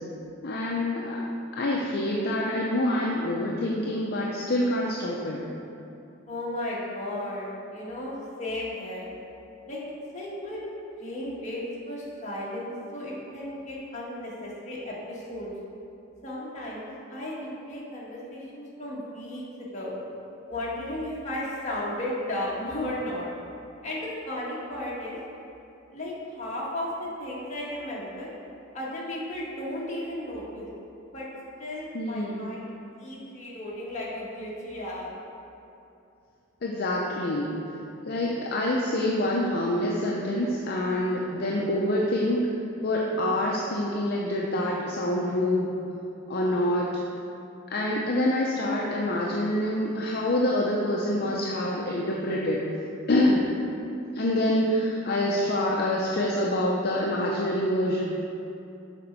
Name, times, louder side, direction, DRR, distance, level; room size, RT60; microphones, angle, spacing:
voice 1, 0.4-1.2 1.6-5.4 31.9-32.4 36.6-37.5 38.1-42.5 42.8-45.7 46.3-46.9 47.7-52.6 53.1-53.4 54.1-58.0, left 1 dB, 55° left, -3 dB, 0.6 m, -26 dB
voice 2, 6.3-9.1 9.7-9.8 10.1-10.6 11.0-15.5 16.2-19.9 20.5-23.3 23.8-25.2 25.9-28.3 28.7-30.7 31.1-31.3 31.6-32.7 33.0-35.1 46.4-46.7, left 1 dB, 35° left, -6 dB, 1.5 m, -34 dB
7.2 x 4.2 x 5.3 m, 2.7 s
head